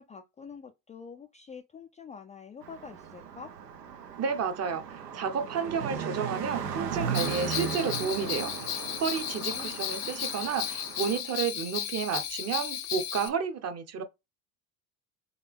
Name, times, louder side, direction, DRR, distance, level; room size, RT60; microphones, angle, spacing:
voice 1, 0.0-3.5 9.3-9.8, left 6 dB, 15° left, 0.3 m, -46 dB
Car passing by, 2.6-11.2, right 7 dB, 85° right, 0.8 m, -37 dB
voice 2, 4.2-8.7 9.0-14.0, right 6 dB, 35° right, 0.8 m, -31 dB
Bell, 7.1-13.3, left 10 dB, 80° left, 0.9 m, -34 dB
3.9 x 2.8 x 3.3 m
hypercardioid pair, 70°, 47 cm